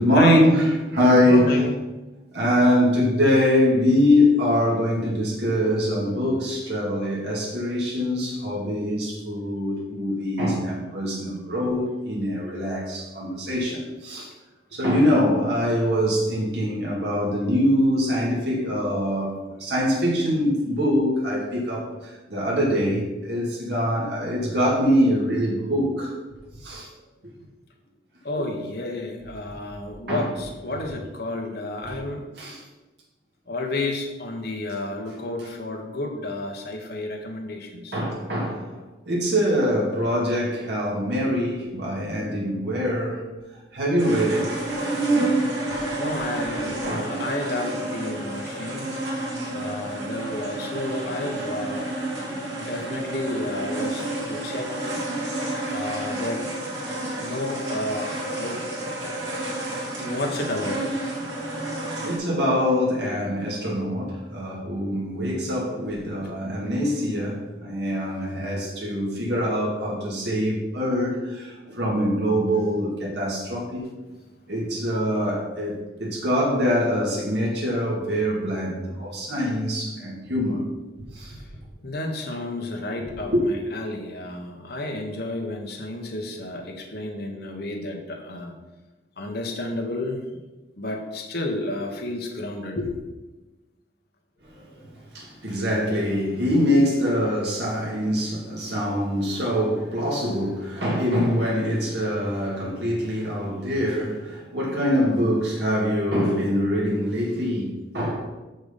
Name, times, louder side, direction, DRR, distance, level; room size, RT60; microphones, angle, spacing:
voice 1, 0.0-1.7 2.3-14.3 14.7-26.1 26.6-26.9 30.1-30.3 31.8-31.9 32.4-32.6 37.9-38.7 39.1-43.2 43.7-44.6 46.9-47.1 52.3-52.4 56.9-57.1 59.2-59.3 62.0-73.8 74.5-80.6 81.1-81.4 83.2-83.4 94.5-94.7 95.1-108.3, equal, 65° right, -5 dB, 2.2 m, -23 dB
voice 2, 0.9-1.7 14.7-14.8 28.2-32.2 33.5-38.0 41.4-41.5 46.0-48.9 49.5-51.9 52.6-54.9 55.7-56.4 57.2-58.6 59.0-59.1 60.0-60.9 66.2-66.3 81.2-81.5 81.8-88.5 89.2-90.2 90.8-92.9 98.6-98.8, left 2 dB, 60° left, 2 dB, 1.4 m, -31 dB
sound 1, 44.0-62.2, right 2 dB, 85° right, 2.5 m, -29 dB
6.5 x 6.2 x 5.4 m, 1.1 s
head